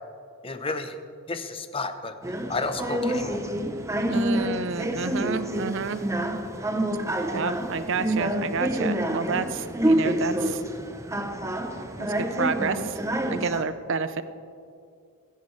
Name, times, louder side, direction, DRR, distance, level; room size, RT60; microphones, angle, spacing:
voice 1, 0.4-1.0 1.3-2.2 2.5-3.5 4.1-4.3, left 3 dB, 25° left, 8 dB, 0.7 m, -32 dB
sound 1, 2.2-13.6, right 1 dB, 15° right, 0.7 m, -28 dB
voice 2, 4.1-6.0 7.3-10.6 12.0-13.0 13.3-14.2, right 4 dB, 60° right, 12 dB, 0.6 m, -29 dB
22.5 x 10.5 x 3.2 m, 2.4 s
head